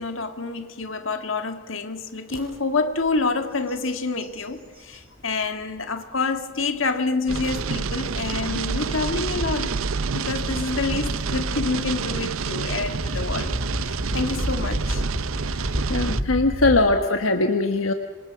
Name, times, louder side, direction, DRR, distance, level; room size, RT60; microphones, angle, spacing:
voice 1, 0.0-9.8 10.1-13.6 13.8-15.2, left 3 dB, 70° left, 1.9 m, -27 dB
sound 1, 2.3-2.4 2.9-3.2 3.5-5.0 5.6-5.7 7.4-16.8, equal, 25° right, 6.6 m, -32 dB
sound 2, 7.3-16.2, right 5 dB, 85° right, 0.7 m, -28 dB
voice 2, 15.9-17.9, left 2 dB, 85° left, 1.3 m, -20 dB
27.0 x 25.5 x 5.9 m
head